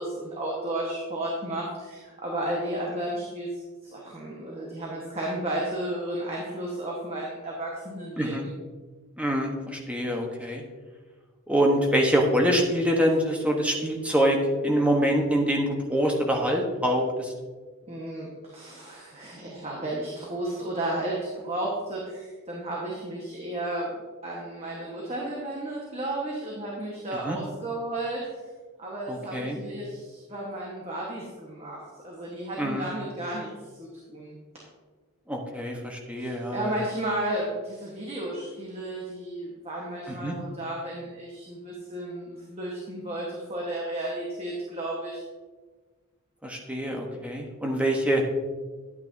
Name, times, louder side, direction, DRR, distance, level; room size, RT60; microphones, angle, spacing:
voice 1, 0.0-8.5 17.9-23.9 24.2-28.3 28.8-34.4 36.2-45.2, right 1 dB, 30° right, -4 dB, 1.3 m, -33 dB
voice 2, 9.2-10.6 11.5-14.4 14.6-17.3 27.2-27.4 29.1-29.6 32.6-32.9 35.3-36.8 40.1-40.3 46.4-48.2, equal, 5° right, 0 dB, 1.0 m, -25 dB
10.5 x 8.9 x 2.7 m, 1.4 s
head